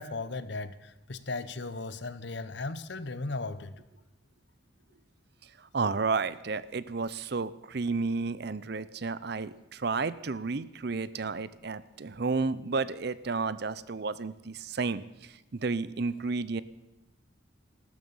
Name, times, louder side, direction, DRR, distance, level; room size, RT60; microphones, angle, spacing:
voice 1, 0.0-3.7, left 3 dB, 60° left, 14 dB, 0.9 m, -36 dB
voice 2, 5.7-16.6, right 4 dB, 50° right, 17 dB, 0.6 m, -32 dB
15.0 x 12.5 x 7.1 m, 0.99 s
head